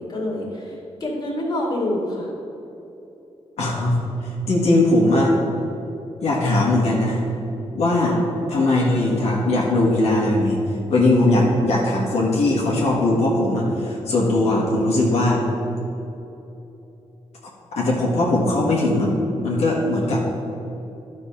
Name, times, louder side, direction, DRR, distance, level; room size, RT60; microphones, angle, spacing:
voice 1, 0.0-2.3 8.0-8.1, left 1 dB, 40° left, -3 dB, 2.1 m, -27 dB
voice 2, 3.6-5.3 6.2-7.2 7.7-8.1 8.5-10.6 10.9-15.4 17.8-19.1 19.4-20.2, left 2 dB, 85° left, -4 dB, 1.6 m, -19 dB
12.0 x 4.1 x 5.7 m, 3.0 s
wide cardioid pair, 135°, 11 cm